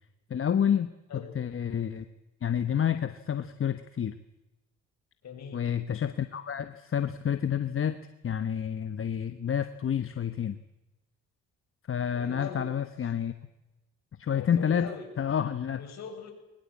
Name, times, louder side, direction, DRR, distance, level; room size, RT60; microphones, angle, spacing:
voice 1, 0.3-0.9 1.3-2.1 2.4-4.2 5.5-8.0 8.2-10.6 11.9-13.3 14.2-14.9 15.2-15.8, left 8 dB, 45° left, 10 dB, 1.3 m, -29 dB
voice 2, 5.2-5.6 12.1-12.7 14.3-15.1 15.7-16.3, left 6 dB, 60° left, 4 dB, 6.7 m, -41 dB
22.0 x 20.0 x 8.7 m, 0.99 s
cardioid pair, 90°, 30 cm